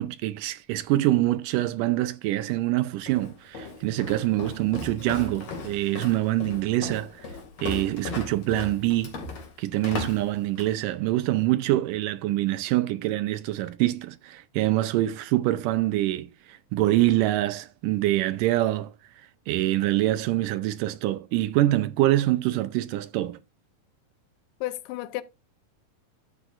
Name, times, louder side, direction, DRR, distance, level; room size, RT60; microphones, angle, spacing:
voice 1, 0.0-7.3 7.6-9.1 9.6-18.9 19.5-23.4, right 15 dB, 80° right, 2.1 m, -25 dB
Walk footsteps, 3.1-10.8, left 3 dB, 50° left, 3.0 m, -37 dB
voice 2, 24.6-25.2, left 16 dB, 80° left, 2.3 m, -32 dB
12.0 x 8.0 x 2.5 m
omnidirectional pair, 4.1 m